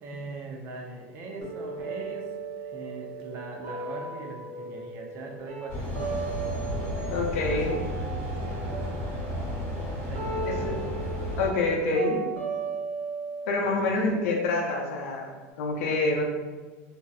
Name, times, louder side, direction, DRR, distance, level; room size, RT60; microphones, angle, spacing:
voice 1, 0.0-6.0 6.8-9.0 10.0-10.8 13.6-13.9, right 2 dB, 35° right, 1 dB, 0.4 m, -41 dB
sound 1, 1.4-7.4 7.6-15.4, right 4 dB, 80° right, 0.7 m, -37 dB
sound 2, 5.7-11.5, left 1 dB, 40° left, 1.0 m, -33 dB
voice 2, 7.1-7.8 10.4-10.8 11.4-12.2 13.5-15.3 15.6-16.2, left 2 dB, 80° left, 1 dB, 0.5 m, -26 dB
2.6 x 2.1 x 2.3 m, 1.4 s
supercardioid pair, 150°, 7 cm